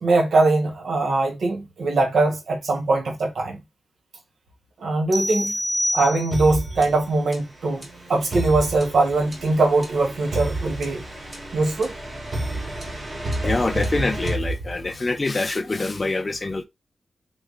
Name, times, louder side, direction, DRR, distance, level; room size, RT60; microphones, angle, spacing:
voice 1, 0.0-3.6 4.8-5.5 5.9-11.0 11.5-11.9, right 3 dB, 75° right, 1.1 m, -21 dB
sound 1, 5.1-6.6, equal, 20° right, 0.7 m, -26 dB
sound 2, 6.3-15.1, right 1 dB, 40° right, 1.7 m, -31 dB
voice 2, 13.4-16.6, left 2 dB, 30° left, 0.5 m, -25 dB
3.8 x 3.2 x 2.4 m
wide cardioid pair, 135°, 0 cm